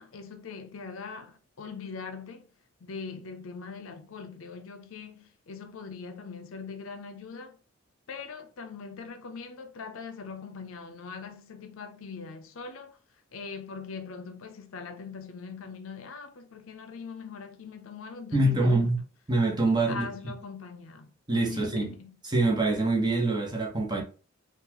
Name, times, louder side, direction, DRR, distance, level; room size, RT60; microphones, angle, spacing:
voice 1, 0.0-2.5 2.8-7.6 8.1-13.0 13.3-18.9 19.9-21.1 21.5-22.2, left 5 dB, 85° left, 0.5 m, -41 dB
voice 2, 18.3-19.0 19.3-20.1 21.3-21.9 22.2-24.0, right 2 dB, 20° right, 0.9 m, -25 dB
3.8 x 2.4 x 2.8 m
head